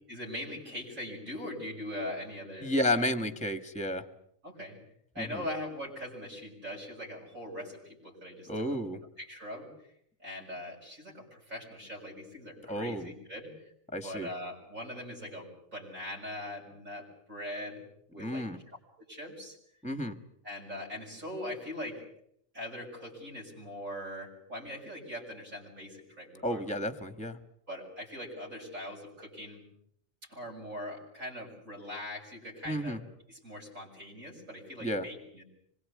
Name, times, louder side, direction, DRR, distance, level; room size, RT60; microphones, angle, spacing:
voice 1, 0.1-3.1 4.4-4.8 5.1-8.8 9.2-9.7 10.2-13.7 14.0-17.8 18.1-18.5 19.1-19.6 20.4-22.0 22.5-26.8 27.7-29.6 30.2-33.0 33.3-35.4, left 1 dB, 80° right, -3 dB, 7.3 m, -41 dB
voice 2, 2.6-4.0 5.2-5.4 8.5-9.0 12.7-13.1 13.9-14.3 18.2-18.6 19.8-20.1 26.4-27.4 32.7-33.0 34.8-35.0, left 1 dB, 5° left, 11 dB, 1.5 m, -32 dB
26.0 x 22.0 x 8.4 m, 0.69 s
omnidirectional pair, 1.4 m